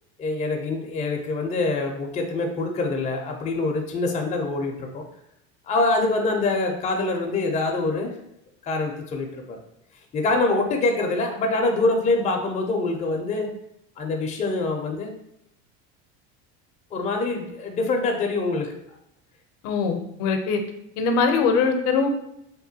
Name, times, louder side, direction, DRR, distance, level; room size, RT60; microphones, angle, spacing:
voice 1, 0.2-5.0 5.7-8.1 8.6-9.6 10.1-13.5 14.0-15.1 16.9-18.7, left 3 dB, 20° left, 2 dB, 0.4 m, -25 dB
voice 2, 19.6-20.6 21.0-22.1, left 5 dB, 70° left, 5 dB, 0.5 m, -22 dB
2.9 x 2.2 x 2.7 m, 0.79 s
supercardioid pair, 110°, 34 cm